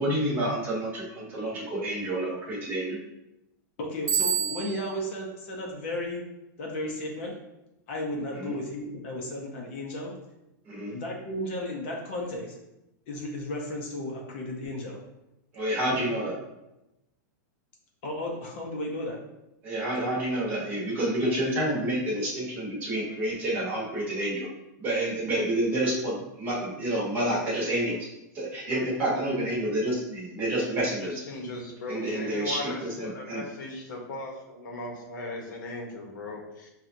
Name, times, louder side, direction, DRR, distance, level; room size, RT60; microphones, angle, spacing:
voice 1, 0.0-3.0 8.4-8.5 10.6-10.9 15.5-16.3 19.6-24.5 24.8-28.0 28.3-31.2 31.9-33.4, right 1 dB, 20° right, -5 dB, 1.0 m, -29 dB
voice 2, 3.8-6.2 6.6-7.4 7.9-10.1 10.9-12.5 13.1-15.0 15.9-16.0 18.0-19.2, left 1 dB, 40° left, -1 dB, 0.7 m, -34 dB
Bicycle bell, 4.1-5.0, right 9 dB, 55° right, 0.8 m, -28 dB
voice 3, 31.3-36.7, left 2 dB, 80° left, 1 dB, 1.0 m, -38 dB
5.8 x 2.4 x 2.6 m, 0.93 s
supercardioid pair, 170°, 10 cm